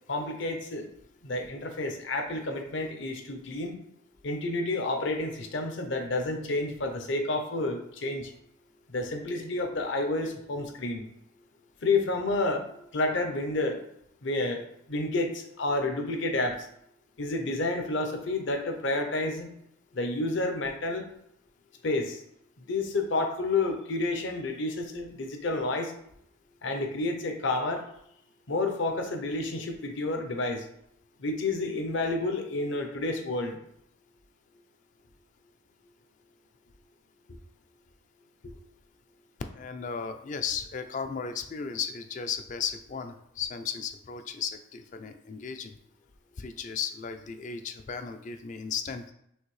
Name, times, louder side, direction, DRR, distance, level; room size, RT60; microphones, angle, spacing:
voice 1, 0.1-0.9 1.2-3.7 4.2-8.3 8.9-11.0 11.8-13.8 14.2-16.7 17.2-19.5 19.9-21.1 21.8-22.2 22.6-25.9 26.6-27.8 28.5-30.7 31.2-33.6, left 2 dB, 60° left, 5 dB, 0.7 m, -30 dB
voice 2, 39.5-45.8 46.4-49.0, left 6 dB, 35° left, 7 dB, 0.3 m, -35 dB
6.4 x 2.6 x 3.2 m, 0.73 s
head